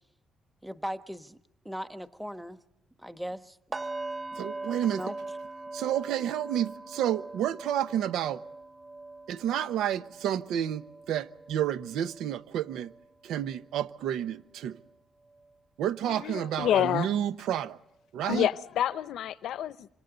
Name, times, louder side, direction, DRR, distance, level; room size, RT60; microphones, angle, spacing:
voice 1, 0.6-1.4 1.6-2.6 3.0-3.6 4.9-5.2, equal, ahead, 1.2 m, -38 dB
sound 1, 3.7-13.6 14.0-14.3 14.7-14.8, right 2 dB, 30° right, 2.4 m, -42 dB
voice 2, 4.3-5.0 5.7-8.4 9.3-12.9 13.2-14.8 15.8-17.8 18.1-18.5, right 10 dB, 85° right, 0.9 m, -30 dB
voice 3, 16.1-17.2 18.2-19.9, left 11 dB, 75° left, 0.8 m, -28 dB
28.5 x 26.0 x 4.0 m
cardioid pair, 90°, 0 cm